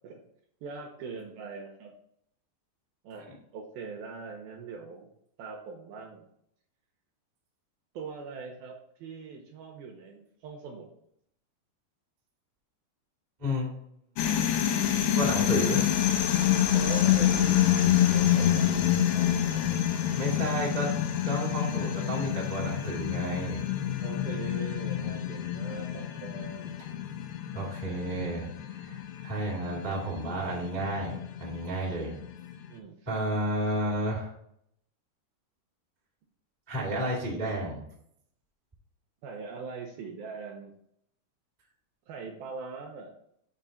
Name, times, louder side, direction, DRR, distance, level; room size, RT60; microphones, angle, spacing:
voice 1, 0.6-1.9 3.0-3.3 3.5-5.1 5.4-6.3 7.9-10.9 16.7-17.6 18.1-19.8 24.0-26.9 32.7-33.1 39.2-40.7 42.1-43.1, right 4 dB, 75° right, 1 dB, 2.3 m, -41 dB
voice 2, 13.4-13.7 15.1-15.8 19.7-19.8 20.1-20.9 21.2-23.6 27.5-32.1 33.1-34.3 36.7-37.8, right 1 dB, 45° right, -3 dB, 0.5 m, -32 dB
sound 1, 14.2-32.6, left 11 dB, 90° left, 3.1 m, -27 dB
6.8 x 3.7 x 5.6 m, 0.71 s
omnidirectional pair, 4.9 m